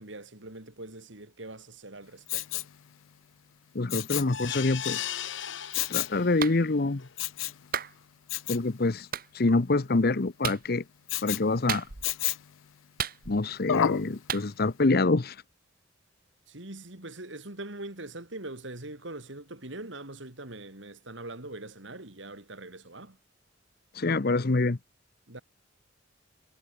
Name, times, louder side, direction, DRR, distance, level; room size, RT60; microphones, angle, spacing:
voice 1, 0.0-2.7 16.5-23.2 25.3-25.4, right 2 dB, 65° right, 3.5 m, -42 dB
Respiratory sounds, 2.3-2.8 3.9-4.4 5.7-6.2 7.2-7.6 8.3-8.6 11.1-11.5 12.0-12.5 13.7-14.1 14.6-14.7, left 11 dB, 85° left, 0.4 m, -30 dB
voice 2, 3.7-5.1 5.9-7.0 8.5-9.1 9.3-10.8 11.2-11.9 13.3-15.4 23.9-24.8, left 3 dB, 50° left, 0.8 m, -26 dB
sound 1, 4.3-6.5 7.0-7.1 7.4-7.5, left 10 dB, 70° left, 1.6 m, -36 dB
Clapping, 6.4-6.6 7.7-7.9 9.1-9.3 10.4-10.7 11.7-12.2 13.0-13.6 14.3-14.5, right 8 dB, 45° right, 1.4 m, -33 dB
head